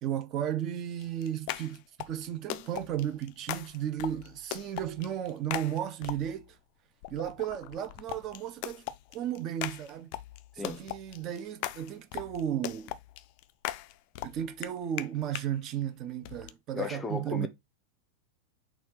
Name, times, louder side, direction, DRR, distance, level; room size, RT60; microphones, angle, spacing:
voice 1, 0.0-6.6 7.1-10.1 10.6-12.9 14.2-17.5, right 10 dB, 35° right, 0.6 m, -34 dB
sound 1, 1.0-6.5 7.0-15.5 16.2-16.5, left 15 dB, 45° left, 0.3 m, -40 dB
voice 2, 16.7-17.5, left 4 dB, 15° left, 0.7 m, -35 dB
4.2 x 2.5 x 4.7 m
figure-of-eight pair, 90°, 0 cm